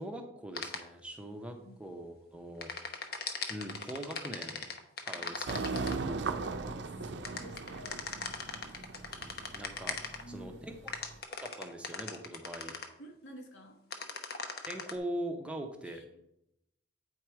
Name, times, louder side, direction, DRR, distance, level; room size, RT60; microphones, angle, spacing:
voice 1, 0.0-2.7 3.5-4.7 5.0-5.7 9.2-10.0 10.3-10.9 11.3-12.7 14.6-16.0, right 1 dB, 5° right, 3 dB, 0.7 m, -42 dB
sound 1, 0.6-0.8 2.6-6.0 7.2-10.2 10.9-12.9 13.9-14.9, left 5 dB, 50° left, 0.8 m, -38 dB
voice 2, 5.1-8.1 10.2-10.7 13.0-13.8 15.8-16.2, equal, 70° left, 3 dB, 1.5 m, -51 dB
sound 2, 5.5-11.1, right 4 dB, 65° right, 0.5 m, -38 dB
8.7 x 4.7 x 4.6 m, 0.81 s
head